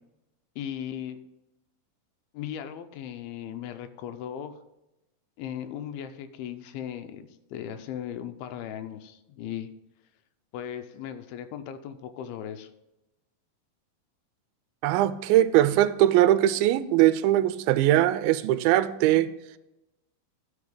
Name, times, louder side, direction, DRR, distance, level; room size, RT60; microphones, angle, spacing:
voice 1, 0.6-1.2 2.3-4.6 5.4-9.7 10.5-12.7, left 9 dB, 90° left, 9 dB, 2.5 m, -37 dB
voice 2, 14.8-19.3, right 13 dB, 85° right, 14 dB, 2.3 m, -21 dB
12.0 x 5.5 x 5.1 m, 0.94 s
omnidirectional pair, 4.3 m